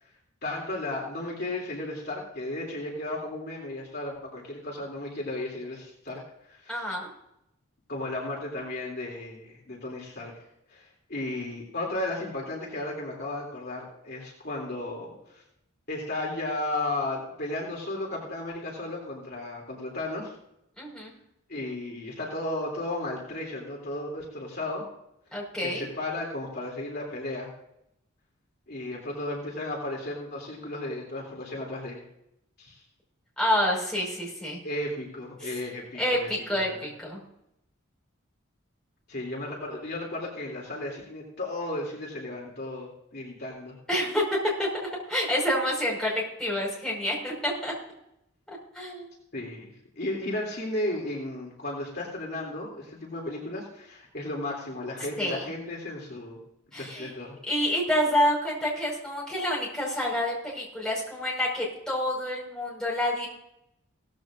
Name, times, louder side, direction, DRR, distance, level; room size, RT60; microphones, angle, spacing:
voice 1, 0.4-6.2 6.4-6.8 7.9-10.3 10.7-15.4 15.9-20.3 21.5-24.8 25.6-27.5 28.7-32.0 32.6-32.8 34.6-36.8 39.1-43.8 49.3-49.7 50.0-56.4 56.7-57.4, left 2 dB, 45° left, -2 dB, 2.9 m, -34 dB
voice 2, 6.7-7.1 20.8-21.1 25.3-25.9 33.4-34.6 35.4-35.5 36.0-37.2 43.9-44.2 44.6-47.7 48.5-49.1 55.2-55.4 56.7-57.1 57.5-63.3, left 1 dB, 5° left, -4 dB, 5.2 m, -28 dB
17.0 x 14.5 x 2.6 m, 0.80 s
head